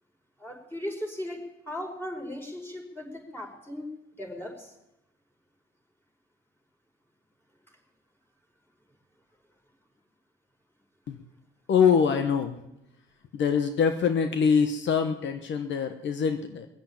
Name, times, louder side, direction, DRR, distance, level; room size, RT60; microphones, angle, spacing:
voice 1, 0.4-3.9 4.2-4.7, left 1 dB, 10° left, 0 dB, 5.1 m, -37 dB
voice 2, 11.7-12.5 13.3-16.7, left 6 dB, 65° left, 8 dB, 1.2 m, -24 dB
21.0 x 7.7 x 8.8 m, 0.87 s
cardioid pair, 90°, 20 cm